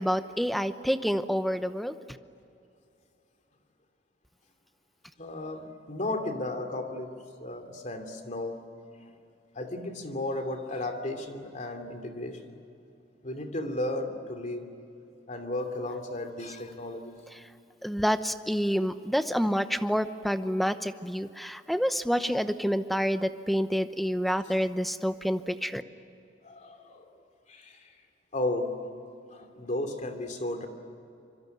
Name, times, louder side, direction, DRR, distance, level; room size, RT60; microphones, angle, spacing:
voice 1, 0.0-1.9 17.4-17.5 17.8-25.8, equal, ahead, 10 dB, 0.9 m, -28 dB
voice 2, 5.2-8.7 9.5-12.5 13.2-14.7 15.3-17.2 22.2-22.3 24.5-24.7 26.4-27.1 27.5-28.0 28.3-28.9 29.3-30.7, left 1 dB, 40° left, 6 dB, 2.8 m, -34 dB
25.0 x 24.5 x 9.5 m, 2.6 s
head